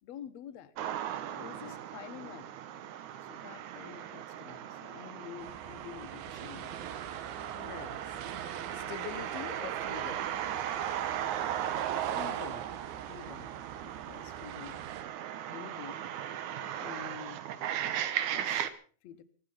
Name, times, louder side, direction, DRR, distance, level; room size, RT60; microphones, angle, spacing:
voice 1, 0.0-0.7 1.3-2.5 3.3-6.9 12.1-12.7 13.1-14.8 15.3-16.0 16.8-17.5 18.3-18.7 19.0-19.2, left 9 dB, 60° left, 2.0 m, -48 dB
Distant Security Alarm Siren With Traffic, 0.8-18.7, right 10 dB, 65° right, 2.2 m, -37 dB
voice 2, 1.3-1.8 5.2-5.5 7.6-8.2 8.4-10.3 16.6-16.7, left 11 dB, 85° left, 2.6 m, -46 dB
sound 1, 5.4-15.0, right 9 dB, 85° right, 3.0 m, -48 dB
25.5 x 8.9 x 5.6 m
omnidirectional pair, 4.0 m